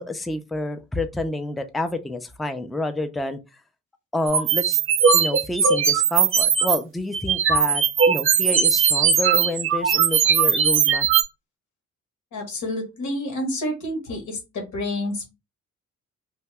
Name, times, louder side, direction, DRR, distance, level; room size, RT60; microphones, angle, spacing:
voice 1, 0.0-3.4 4.1-4.8 5.1-11.1, left 1 dB, ahead, 0.3 m, -28 dB
sound 1, 4.3-6.8 7.1-11.2, right 7 dB, 45° right, 0.6 m, -19 dB
voice 2, 12.3-15.3, left 1 dB, 75° left, 1.5 m, -29 dB
2.8 x 2.2 x 3.3 m
cardioid pair, 90°, 30 cm